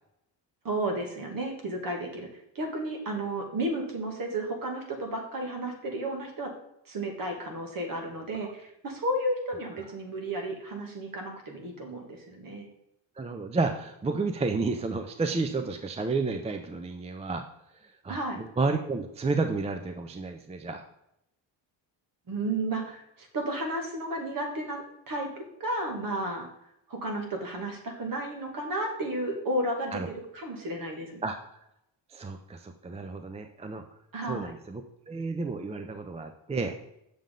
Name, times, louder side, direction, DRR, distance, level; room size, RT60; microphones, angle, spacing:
voice 1, 0.6-2.3 2.6-6.5 6.9-12.7 18.1-18.4 22.3-26.5 26.9-31.2 34.1-34.5, right 1 dB, 50° right, 2 dB, 2.1 m, -33 dB
voice 2, 13.2-17.4 17.8-20.8 29.9-30.1 31.2-31.4 32.1-33.8 34.2-36.8, right 3 dB, 15° right, 6 dB, 0.4 m, -31 dB
7.3 x 6.7 x 3.8 m, 0.81 s
cardioid pair, 125°, 44 cm